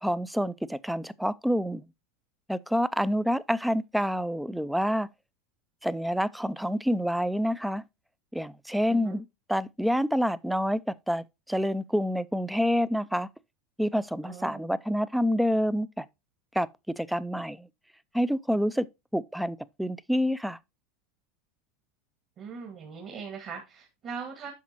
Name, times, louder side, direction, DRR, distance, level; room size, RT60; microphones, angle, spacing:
voice 1, 0.0-1.9 2.5-5.1 5.8-7.8 8.3-13.3 13.8-16.1 16.5-17.7 18.1-18.9 19.1-20.6, equal, ahead, 0.3 m, -28 dB
voice 2, 8.9-9.2 14.2-14.7 22.4-24.5, right 6 dB, 40° right, 1.9 m, -40 dB
8.4 x 5.9 x 2.9 m
supercardioid pair, 115°, 0 cm